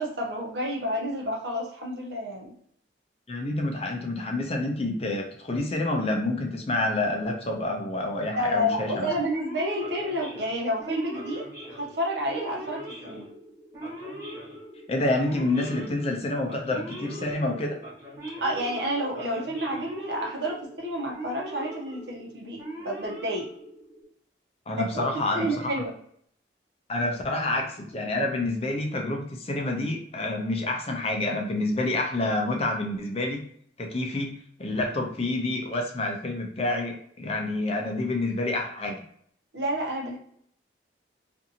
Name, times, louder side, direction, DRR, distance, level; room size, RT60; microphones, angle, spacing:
voice 1, 0.0-2.5 8.3-13.3 18.4-23.5 24.8-25.0 25.3-26.0 39.5-40.2, equal, 70° right, -1 dB, 0.8 m, -30 dB
voice 2, 3.3-9.1 14.9-17.8 24.7-25.8 26.9-33.5 33.8-39.0, left 2 dB, 35° left, 2 dB, 0.5 m, -28 dB
Male speech man speaking / Siren, 9.3-24.0, equal, 15° right, 1.0 m, -41 dB
2.6 x 2.5 x 2.7 m, 0.65 s
head